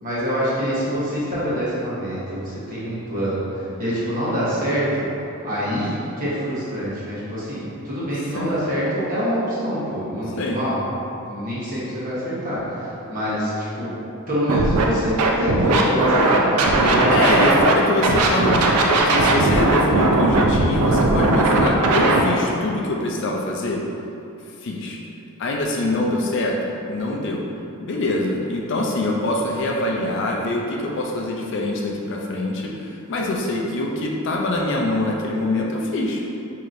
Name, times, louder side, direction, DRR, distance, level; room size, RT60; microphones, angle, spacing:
voice 1, 0.0-3.5 3.8-5.1 5.4-10.8 11.3-13.9 14.3-17.4, equal, 40° right, -9 dB, 1.0 m, -25 dB
Scratching (performance technique), 14.5-14.8 15.2-17.7 18.0-22.2, right 2 dB, 85° right, 0.4 m, -18 dB
voice 2, 17.1-23.8 24.6-25.0 25.4-27.4 27.8-36.2, left 2 dB, 55° left, -1 dB, 0.4 m, -24 dB
4.7 x 2.8 x 2.5 m, 2.8 s
head